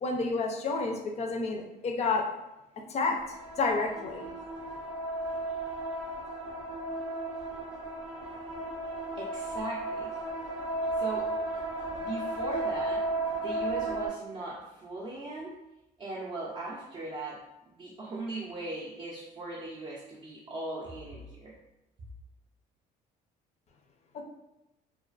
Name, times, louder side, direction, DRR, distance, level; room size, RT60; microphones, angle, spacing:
voice 1, 0.0-2.3 2.9-3.2 3.6-4.3 24.1-24.2, left 3 dB, 40° left, 2 dB, 0.4 m, -30 dB
sound 1, 3.2-14.1, right 2 dB, 85° right, 0.5 m, -34 dB
voice 2, 9.1-10.1 10.9-11.3 12.0-13.0 13.3-15.5 16.0-21.5, right 2 dB, 35° right, -5 dB, 0.4 m, -39 dB
2.3 x 2.3 x 2.4 m, 0.93 s
cardioid pair, 110°, 17 cm